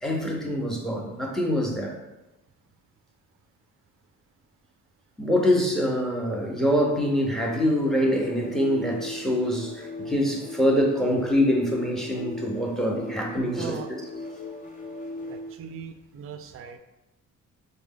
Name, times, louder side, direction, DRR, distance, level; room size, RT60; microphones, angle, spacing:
voice 1, 0.0-1.9 5.2-13.8, equal, ahead, 0 dB, 0.8 m, -24 dB
sound 1, 7.2-15.6, left 2 dB, 25° left, 0.6 m, -39 dB
voice 2, 13.5-13.9 15.3-16.8, right 6 dB, 45° right, 8 dB, 0.4 m, -39 dB
4.7 x 2.2 x 3.6 m, 0.98 s
cardioid pair, 90°, 30 cm